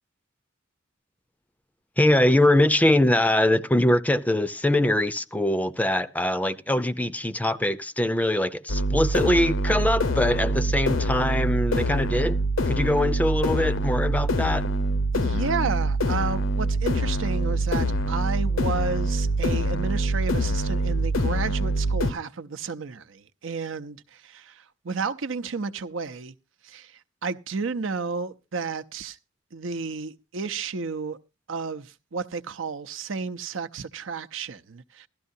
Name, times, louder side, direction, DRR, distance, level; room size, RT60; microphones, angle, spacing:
voice 1, 2.0-12.4 12.7-14.6, left 1 dB, 10° left, 0.5 m, -22 dB
sound 1, 8.7-22.1, right 1 dB, 85° left, 1.0 m, -25 dB
voice 2, 15.1-26.3 26.6-29.2 29.5-31.2 31.5-35.1, right 4 dB, 75° right, 0.7 m, -32 dB
16.0 x 12.5 x 2.7 m
head